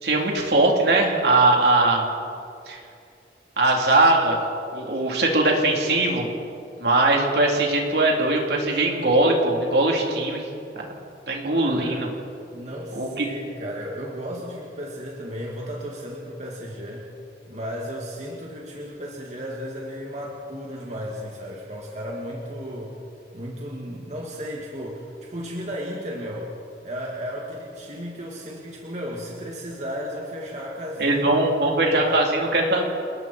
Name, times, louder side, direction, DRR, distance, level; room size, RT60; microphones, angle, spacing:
voice 1, 0.0-2.1 2.7-2.8 3.6-4.4 4.7-6.3 6.8-10.5 10.8-10.9 11.3-12.1 13.0-13.3 31.0-32.8, right 2 dB, 65° right, -1 dB, 3.8 m, -20 dB
voice 2, 11.6-12.0 12.5-17.1 17.5-22.9 23.3-26.5 26.8-31.3 31.8-32.2, equal, 40° right, -2 dB, 2.5 m, -34 dB
29.0 x 20.5 x 4.6 m, 2.5 s
head